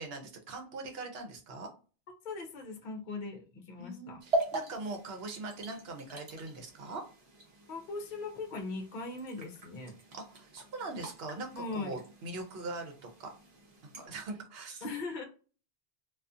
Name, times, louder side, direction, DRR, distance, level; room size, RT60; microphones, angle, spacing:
voice 1, 0.0-1.7 3.8-7.0 10.1-13.3 14.0-14.8, right 3 dB, 65° right, 3 dB, 0.9 m, -41 dB
voice 2, 2.2-4.2 7.7-10.0 11.5-12.0 14.8-15.2, left 3 dB, 55° left, 4 dB, 0.7 m, -39 dB
sound 1, 4.2-14.1, right 1 dB, 40° right, 0.7 m, -41 dB
2.4 x 2.4 x 2.5 m, 0.36 s
omnidirectional pair, 1.1 m